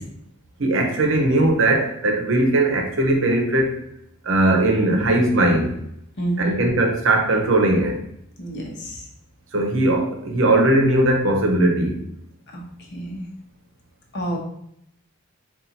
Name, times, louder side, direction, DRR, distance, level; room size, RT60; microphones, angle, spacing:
voice 1, 0.6-3.8 4.2-5.8 6.4-8.0 9.5-12.0, right 1 dB, 65° right, 2 dB, 0.8 m, -19 dB
voice 2, 6.2-6.6 8.4-9.0 12.5-12.6 12.9-13.3 14.1-14.4, right 2 dB, 60° left, -1 dB, 0.9 m, -28 dB
4.2 x 2.5 x 3.8 m, 0.75 s
head